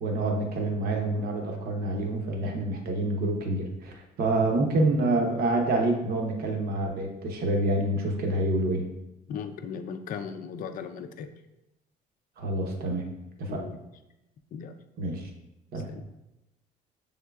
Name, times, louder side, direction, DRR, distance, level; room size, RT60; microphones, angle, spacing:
voice 1, 0.0-8.8 12.4-13.1 13.4-13.6 15.0-15.2 15.7-15.9, right 2 dB, 65° right, 2 dB, 0.9 m, -27 dB
voice 2, 9.3-11.3 13.5-13.8 14.5-14.7 15.9-16.0, left 6 dB, 55° left, 7 dB, 0.4 m, -37 dB
6.2 x 3.7 x 2.3 m, 0.92 s
cardioid pair, 110°, 17 cm